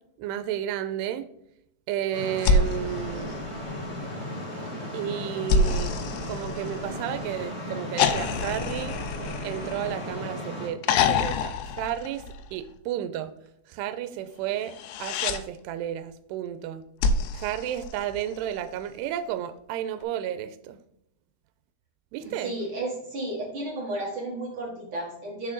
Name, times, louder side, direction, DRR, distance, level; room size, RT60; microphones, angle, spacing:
voice 1, 0.2-1.3 1.9-3.4 4.9-5.9 6.3-8.9 9.4-12.2 12.5-13.3 13.7-16.8 17.3-20.8 22.1-22.5, right 11 dB, 85° right, 2.6 m, -32 dB
sound 1, 2.1-10.7, left 1 dB, 30° left, 3.1 m, -35 dB
sound 2, 2.4-4.0 5.5-7.2 8.0-10.3 10.8-12.7 14.6-15.4 17.0-18.5 20.0-20.1, left 4 dB, 90° left, 2.8 m, -27 dB
voice 2, 22.2-25.5, right 2 dB, 55° right, 1.5 m, -33 dB
6.5 x 6.5 x 3.9 m
omnidirectional pair, 4.7 m